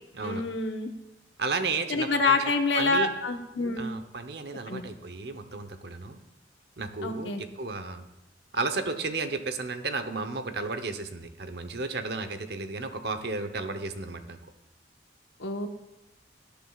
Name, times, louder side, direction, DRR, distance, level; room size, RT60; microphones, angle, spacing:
voice 1, 0.2-0.9 1.9-3.9 4.7-4.8 7.0-7.4 15.4-15.7, left 3 dB, 85° left, 5 dB, 1.2 m, -27 dB
voice 2, 1.4-3.1 3.8-6.2 6.8-8.1 8.5-14.4, right 3 dB, 60° right, 8 dB, 0.9 m, -33 dB
18.0 x 10.5 x 2.4 m, 0.95 s
head